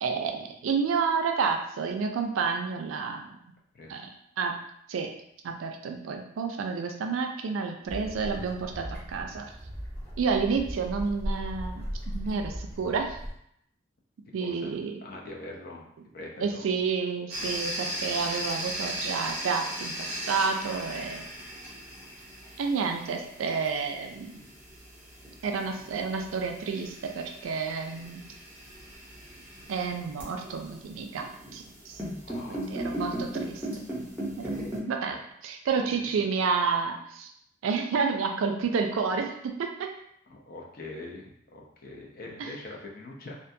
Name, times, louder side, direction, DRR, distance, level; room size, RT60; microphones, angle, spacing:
voice 1, 0.0-3.4 3.9-4.0 4.4-4.5 4.9-5.1 5.4-9.4 10.2-13.2 14.3-15.0 16.4-21.3 22.6-24.4 25.4-28.2 29.7-31.3 31.5-32.0 32.7-33.6 34.4-34.6 34.9-37.3 37.6-39.9 42.4-42.5, right 5 dB, 90° right, 4 dB, 0.4 m, -30 dB
sound 1, 7.8-13.3, equal, 10° left, 1.0 m, -37 dB
voice 2, 14.4-15.8 16.1-16.7 32.2-32.7 35.9-36.2 40.3-43.4, left 2 dB, 50° left, -1 dB, 0.5 m, -43 dB
sound 2, 17.3-34.8, right 1 dB, 10° right, 0.7 m, -37 dB
2.5 x 2.2 x 2.6 m, 0.73 s
head